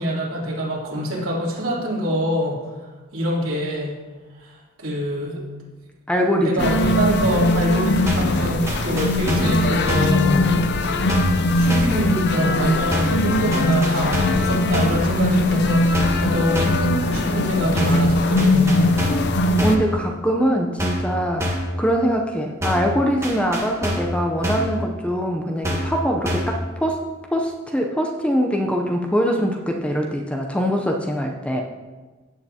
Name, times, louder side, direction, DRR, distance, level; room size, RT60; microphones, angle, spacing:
voice 1, 0.0-4.0 4.4-5.4 6.4-10.6 11.4-18.9, equal, 65° right, -6 dB, 3.3 m, -25 dB
voice 2, 6.1-6.7 19.6-31.6, equal, 5° left, 2 dB, 0.6 m, -23 dB
sound 1, 6.6-19.8, left 2 dB, 50° left, 0.6 m, -20 dB
sound 2, 8.1-8.4 8.7-9.6 9.9-10.2 11.1-11.4 11.7-12.0 12.9-13.2 13.5-14.4 14.7-15.0 15.9-16.3 16.5-16.9 17.8-18.1 18.4-19.3 19.6-19.9 20.8-21.1 21.4-21.7 22.6-22.9 23.2-24.1 24.4-24.8 25.6-26.0 26.2-26.6, equal, 15° right, 1.4 m, -26 dB
15.5 x 8.4 x 2.8 m, 1.3 s
head